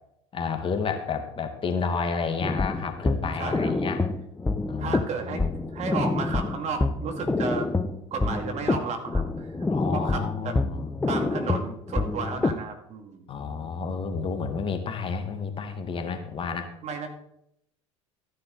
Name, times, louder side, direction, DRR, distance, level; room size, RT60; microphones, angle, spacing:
voice 1, 0.3-4.1 4.7-5.0 5.2-5.4 9.7-10.9 13.3-16.7, left 5 dB, 30° left, 6 dB, 1.8 m, -30 dB
sound 1, 2.4-12.6, left 3 dB, 10° left, 0.8 m, -27 dB
voice 2, 3.4-3.7 4.8-5.4 5.7-7.7 8.1-9.6 9.9-10.6 11.1-13.3 16.8-17.1, right 4 dB, 45° right, 4 dB, 2.5 m, -33 dB
14.0 x 9.7 x 4.1 m, 0.79 s
hypercardioid pair, 80°, 17 cm